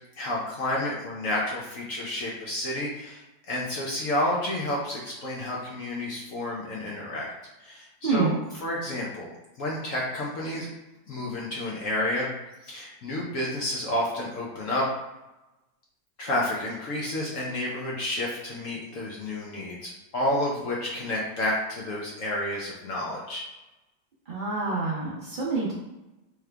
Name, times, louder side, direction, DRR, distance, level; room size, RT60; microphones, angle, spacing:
voice 1, 0.2-7.3 7.6-8.4 8.6-9.3 9.6-10.7 11.1-12.3 12.6-14.9 16.2-23.4, left 1 dB, 60° left, -3 dB, 0.8 m, -30 dB
voice 2, 8.0-8.3 24.3-25.7, right 3 dB, 70° right, -6 dB, 0.4 m, -27 dB
3.5 x 3.1 x 3.3 m, 1.0 s
omnidirectional pair, 2.0 m